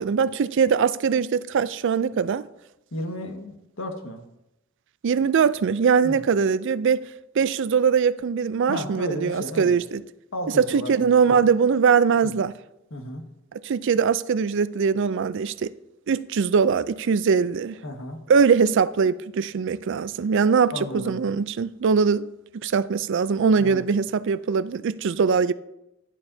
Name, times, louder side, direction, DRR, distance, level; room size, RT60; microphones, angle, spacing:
voice 1, 0.0-2.4 5.0-7.0 7.4-10.0 10.6-12.5 13.6-15.7 16.1-17.8 18.3-22.3 22.6-25.5, right 6 dB, 60° right, 0.4 m, -21 dB
voice 2, 2.9-4.2 6.0-6.2 8.7-9.8 10.3-11.2 12.2-12.3 12.9-13.2 17.8-18.2 20.7-21.2 23.6-23.8, left 1 dB, 70° left, 1.6 m, -33 dB
16.0 x 11.0 x 2.7 m
head